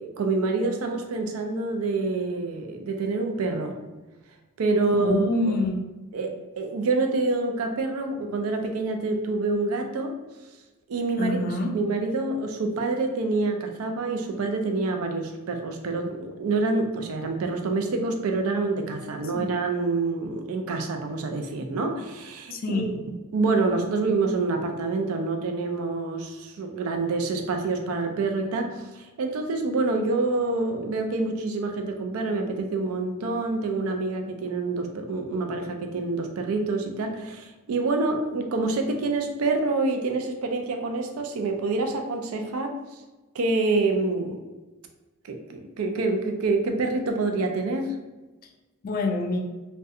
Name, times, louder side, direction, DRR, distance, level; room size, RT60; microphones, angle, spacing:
voice 1, 0.0-3.8 4.6-5.5 6.1-10.2 10.9-11.4 11.7-42.8 43.3-44.4 45.3-47.9, right 3 dB, 90° right, 4 dB, 0.4 m, -27 dB
voice 2, 5.0-5.8 11.2-11.7 19.3-19.5 22.5-22.9 48.8-49.4, left 2 dB, 45° left, 4 dB, 0.3 m, -26 dB
2.3 x 2.2 x 2.7 m, 1.2 s
head